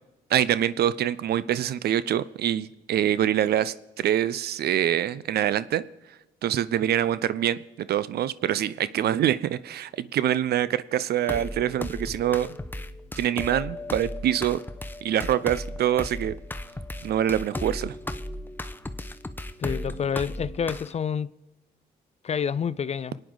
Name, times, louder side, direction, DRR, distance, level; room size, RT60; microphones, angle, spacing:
voice 1, 0.3-5.8 6.4-12.5 13.2-14.6 15.0-16.4 17.0-17.9, right 11 dB, 60° right, 0.6 m, -25 dB
sound 1, 11.2-21.0, left 1 dB, 10° left, 0.9 m, -36 dB
voice 2, 19.6-21.3 22.2-23.2, left 7 dB, 35° left, 0.5 m, -28 dB
25.5 x 9.1 x 3.9 m
hypercardioid pair, 55°, 19 cm